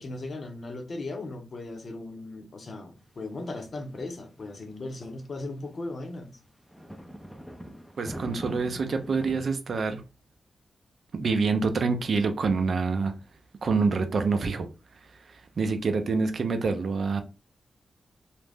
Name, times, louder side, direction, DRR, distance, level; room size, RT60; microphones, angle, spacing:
voice 1, 0.0-6.4, left 2 dB, 55° left, 0.7 m, -37 dB
sound 1, 3.0-5.3 5.9-6.0 6.6-9.5, equal, ahead, 0.5 m, -43 dB
voice 2, 8.0-10.0 11.1-13.1 13.6-14.7 15.3-17.2, right 4 dB, 65° right, 0.5 m, -26 dB
2.5 x 2.1 x 3.4 m
cardioid pair, 65°, 0 cm